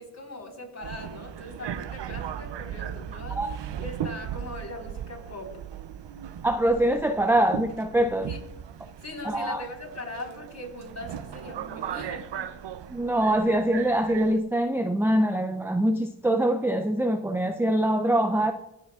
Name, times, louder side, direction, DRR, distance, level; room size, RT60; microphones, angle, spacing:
voice 1, 0.0-5.6 8.3-8.4 9.0-12.5, left 1 dB, 35° left, -1 dB, 4.2 m, -40 dB
Subway metro underground, 0.8-14.4, right 9 dB, 65° right, 0.6 m, -37 dB
voice 2, 6.4-8.3 9.2-9.6 12.9-18.5, right 1 dB, 5° right, 7 dB, 0.5 m, -24 dB
25.5 x 8.6 x 2.4 m, 0.92 s
cardioid pair, 65°, 45 cm